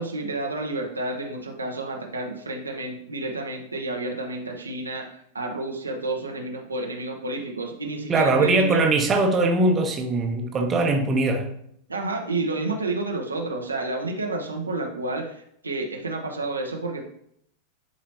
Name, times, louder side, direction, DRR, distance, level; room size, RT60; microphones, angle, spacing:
voice 1, 0.0-8.9 11.9-17.0, right 2 dB, 80° right, 1.0 m, -30 dB
voice 2, 8.1-11.5, right 2 dB, 25° right, 1.0 m, -21 dB
10.5 x 4.2 x 2.9 m
figure-of-eight pair, 90°, 0 cm